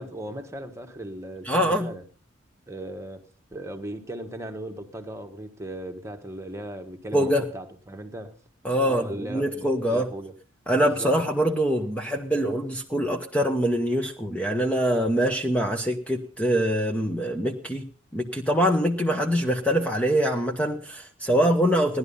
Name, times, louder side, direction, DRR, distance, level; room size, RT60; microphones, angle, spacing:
voice 1, 0.0-2.0 2.7-3.2 3.5-8.4 8.8-10.3 10.9-11.2, right 1 dB, 15° right, 1.4 m, -37 dB
voice 2, 1.4-1.9 7.1-7.4 8.6-10.1 10.7-17.9 18.1-22.0, equal, 5° left, 0.9 m, -24 dB
17.0 x 11.5 x 5.5 m
head